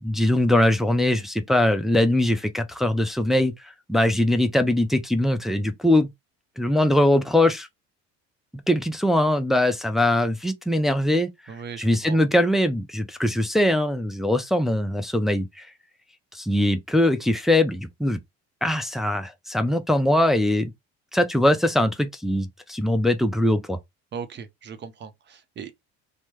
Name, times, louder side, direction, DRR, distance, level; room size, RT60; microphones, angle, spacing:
voice 1, 0.0-6.1 6.6-7.7 8.7-11.3 11.8-15.7 16.3-18.2 18.6-20.7 21.1-23.8, left 1 dB, ahead, 0.4 m, -21 dB
voice 2, 11.5-12.2 24.1-25.7, right 6 dB, 35° right, 0.7 m, -38 dB
3.3 x 2.1 x 3.0 m
supercardioid pair, 95°, 30 cm